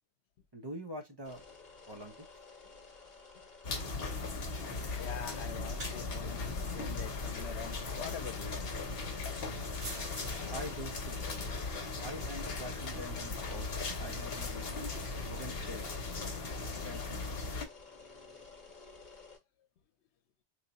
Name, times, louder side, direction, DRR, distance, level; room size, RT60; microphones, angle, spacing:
voice 1, 0.5-1.4 1.9-2.1 10.5-11.3 12.0-13.7 14.0-14.7 15.2-15.9 16.8-17.4, equal, 25° right, 0.7 m, -44 dB
sound 1, 1.2-19.4, left 4 dB, 45° left, 1.2 m, -54 dB
sound 2, 3.6-17.6, left 3 dB, 65° left, 1.1 m, -38 dB
voice 2, 5.0-8.6, left 8 dB, 85° left, 0.9 m, -44 dB
sound 3, 5.6-12.0, right 1 dB, 65° right, 1.5 m, -50 dB
3.1 x 2.3 x 4.0 m
omnidirectional pair, 1.1 m